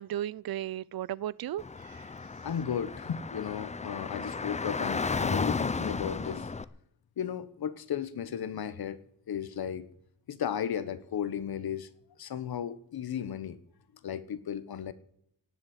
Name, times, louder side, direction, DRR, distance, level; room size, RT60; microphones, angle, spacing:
voice 1, 0.0-2.1, right 12 dB, 75° right, 0.5 m, -35 dB
Car / Traffic noise roadway noise, 1.6-6.6, left 4 dB, 20° left, 0.5 m, -34 dB
voice 2, 2.4-6.5 7.2-9.0 9.3-9.9 10.3-11.9 12.2-13.6 14.0-14.9, left 8 dB, 85° left, 1.2 m, -34 dB
18.0 x 7.3 x 8.2 m
wide cardioid pair, 165°, 36 cm